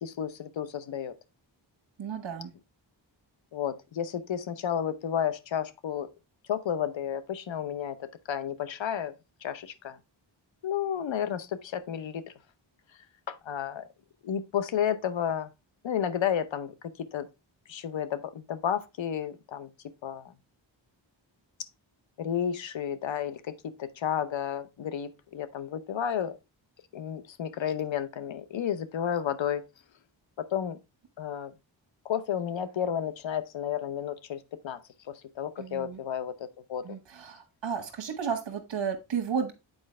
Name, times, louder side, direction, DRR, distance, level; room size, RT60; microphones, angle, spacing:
voice 1, 0.0-1.1 3.5-6.1 6.5-9.1 9.4-10.0 10.6-12.2 13.3-13.9 14.2-15.5 15.8-16.7 17.1-17.3 17.7-19.7 20.0-20.3 22.2-26.4 26.9-29.6 30.4-30.8 31.2-31.5 32.0-34.8 35.1-37.0, left 9 dB, 75° left, 0.8 m, -32 dB
voice 2, 2.0-2.5 35.6-36.0 36.8-39.5, right 6 dB, 65° right, 1.2 m, -33 dB
8.0 x 4.5 x 3.2 m
cardioid pair, 65°, 46 cm